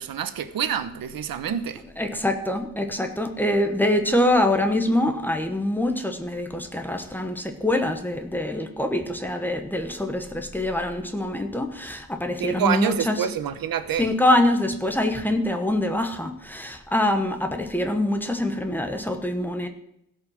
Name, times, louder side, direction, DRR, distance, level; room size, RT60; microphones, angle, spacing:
voice 1, 0.0-1.8 12.4-14.1, right 8 dB, 85° right, 12 dB, 1.0 m, -27 dB
voice 2, 2.0-13.1 14.0-19.7, left 1 dB, 5° left, 5 dB, 1.1 m, -24 dB
16.5 x 5.6 x 7.3 m, 0.78 s
wide cardioid pair, 175°, 34 cm